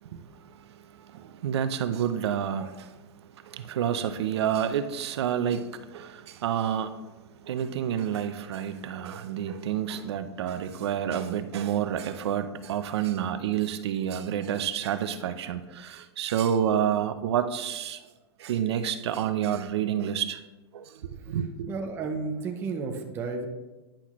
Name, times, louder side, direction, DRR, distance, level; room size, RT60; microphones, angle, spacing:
voice 1, 0.0-3.0 3.4-7.0 7.4-18.0 18.4-20.4 20.7-21.7, right 9 dB, 75° right, 0.6 m, -29 dB
voice 2, 21.7-23.5, right 4 dB, 15° right, 0.5 m, -32 dB
10.0 x 5.9 x 3.0 m
supercardioid pair, 170°, 14 cm